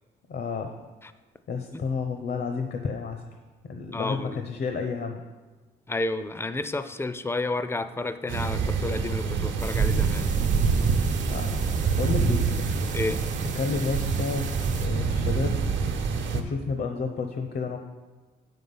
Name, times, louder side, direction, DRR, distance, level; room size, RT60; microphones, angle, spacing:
voice 1, 0.3-0.8 1.5-3.3 3.7-5.2 11.2-12.5 13.5-14.5 14.8-15.6 16.3-17.8, left 4 dB, 55° left, 5 dB, 0.8 m, -31 dB
voice 2, 3.9-4.4 5.9-10.3 12.9-13.2, left 2 dB, 10° left, 11 dB, 0.5 m, -31 dB
sound 1, 8.3-16.4, right 5 dB, 70° right, 1.0 m, -26 dB
sound 2, 9.6-14.9, right 6 dB, 40° right, 0.6 m, -41 dB
7.5 x 5.7 x 5.5 m, 1.3 s
cardioid pair, 90°, 20 cm